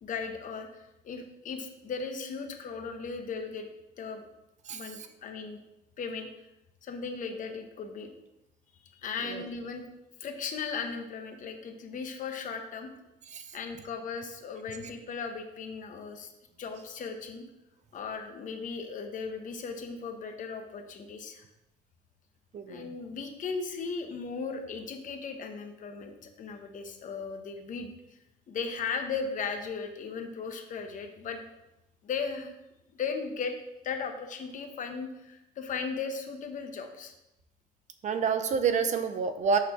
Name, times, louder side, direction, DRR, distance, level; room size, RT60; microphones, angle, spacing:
voice 1, 0.0-3.7 4.0-4.2 4.7-5.6 6.0-6.3 6.8-8.1 8.8-9.8 10.2-12.9 13.5-16.3 16.6-17.4 17.9-21.4 22.7-27.9 28.5-31.4 32.0-32.5 32.9-33.5 33.8-37.1, left 5 dB, 50° left, 5 dB, 1.0 m, -37 dB
voice 2, 4.7-5.1 9.2-9.4 13.3-13.4 22.5-22.9 38.0-39.6, right 6 dB, 45° right, 8 dB, 0.6 m, -28 dB
6.6 x 3.3 x 5.7 m, 0.92 s
cardioid pair, 110°, 17 cm